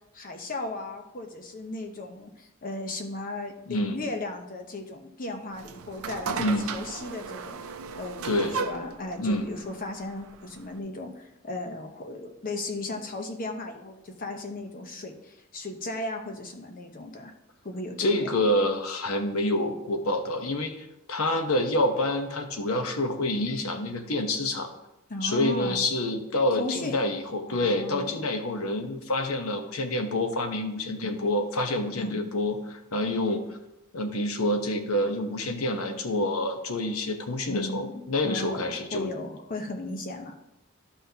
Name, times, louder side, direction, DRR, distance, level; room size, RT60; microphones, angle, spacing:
voice 1, 0.1-7.6 8.0-17.3 17.6-18.4 25.1-25.8 26.6-26.9 27.5-28.3 31.0-31.2 32.0-32.2 37.5-37.9 38.2-40.3, left 2 dB, 40° left, 4 dB, 0.9 m, -36 dB
voice 2, 3.7-4.0 6.3-6.7 8.2-8.6 9.2-9.5 18.0-24.7 25.2-33.6 33.9-39.1, left 1 dB, 80° left, 5 dB, 0.9 m, -27 dB
sound 1, 5.5-10.8, right 5 dB, 75° right, 0.5 m, -36 dB
12.0 x 5.8 x 2.8 m, 0.90 s
head